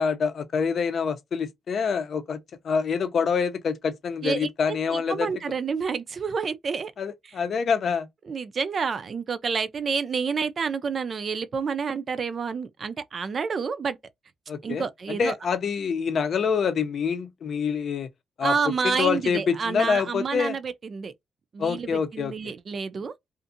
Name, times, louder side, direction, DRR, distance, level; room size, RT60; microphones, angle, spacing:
voice 1, 0.0-2.4 2.6-5.3 7.0-8.1 14.5-18.1 18.4-18.5 18.8-20.6 21.6-22.5, left 6 dB, 60° left, 0.5 m, -26 dB
voice 2, 4.9-6.9 8.2-14.0 14.6-15.4 18.4-21.1 21.5-23.1, right 5 dB, 50° right, 0.4 m, -29 dB
2.5 x 2.5 x 2.6 m
cardioid pair, 80°, 0 cm